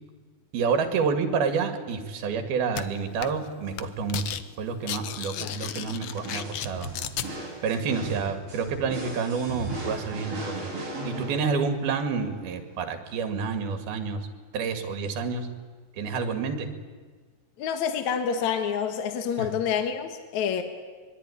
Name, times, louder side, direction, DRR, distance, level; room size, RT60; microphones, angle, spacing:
voice 1, 0.5-6.9 7.6-10.6 11.1-14.2 14.5-15.5 16.0-16.7 19.4-19.5, right 5 dB, 85° right, 7 dB, 4.0 m, -29 dB
sound 1, 2.8-2.9 3.2-3.5 3.7-4.4 4.7-7.3, left 11 dB, 80° left, 1.4 m, -34 dB
sound 2, 6.1-11.9, right 2 dB, 40° right, 7.8 m, -36 dB
voice 2, 17.6-20.6, left 7 dB, 60° left, 7 dB, 2.5 m, -28 dB
24.5 x 22.5 x 10.0 m, 1.5 s
omnidirectional pair, 4.3 m